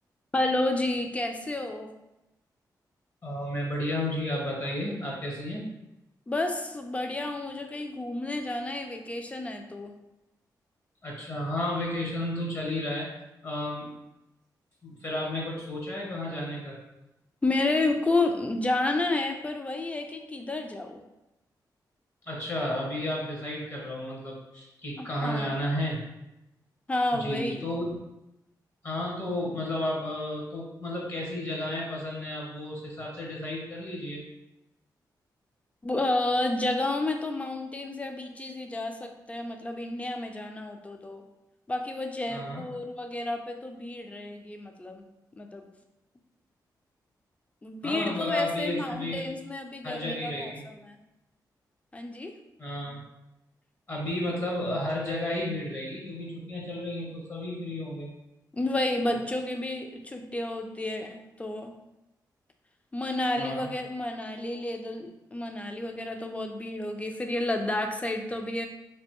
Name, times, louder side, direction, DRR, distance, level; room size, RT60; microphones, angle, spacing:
voice 1, 0.3-1.9 6.3-9.9 17.4-21.0 25.2-25.5 26.9-27.7 35.8-41.2 41.7-45.0 45.4-45.7 47.6-51.0 51.9-52.3 58.5-61.7 62.9-68.7, left 2 dB, 20° left, 5 dB, 0.4 m, -30 dB
voice 2, 3.2-5.7 11.0-13.1 13.4-14.0 14.8-16.8 22.2-26.0 27.1-28.0 28.8-34.2 42.3-42.6 47.8-49.2 49.8-50.6 52.6-53.0 53.9-58.1 63.4-63.7, left 1 dB, 40° left, -3 dB, 0.9 m, -32 dB
3.2 x 2.5 x 2.9 m, 0.93 s
cardioid pair, 90°, 7 cm